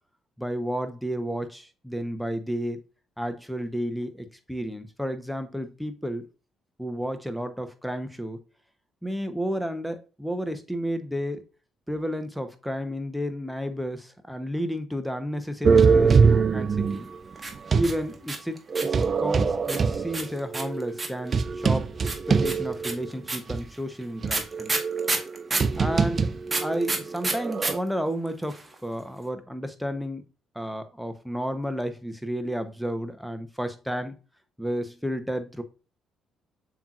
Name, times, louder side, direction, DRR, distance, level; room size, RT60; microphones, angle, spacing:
voice 1, 0.4-2.8 3.2-6.3 6.8-8.4 9.0-11.4 11.9-17.1 17.7-21.9 22.3-24.7 25.8-26.3 26.6-30.2 30.5-34.2 34.6-35.6, equal, ahead, 0.9 m, -32 dB
sound 1, 15.6-18.0 18.7-23.1 23.5-23.6 24.2-27.8, right 5 dB, 45° right, 0.3 m, -23 dB
sound 2, 17.4-19.0 19.7-21.3 22.1-25.8 26.5-27.7 28.0-28.1 28.3-28.7, right 3 dB, 30° right, 1.1 m, -29 dB
7.0 x 3.0 x 2.4 m
hypercardioid pair, 45°, 0 cm